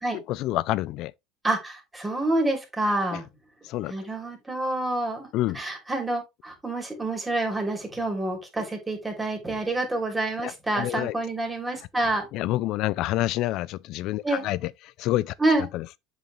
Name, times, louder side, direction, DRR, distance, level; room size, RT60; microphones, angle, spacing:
voice 1, 0.1-1.1 3.1-3.2 3.7-3.9 5.3-5.6 10.4-11.1 12.3-14.7 15.0-15.3 15.7-15.8, left 16 dB, 60° left, 0.4 m, -28 dB
voice 2, 1.4-3.2 3.9-5.3 5.5-12.3 14.2-14.4 15.4-15.7, right 2 dB, 15° right, 3.0 m, -27 dB
7.7 x 4.9 x 3.2 m
supercardioid pair, 100°, 0 cm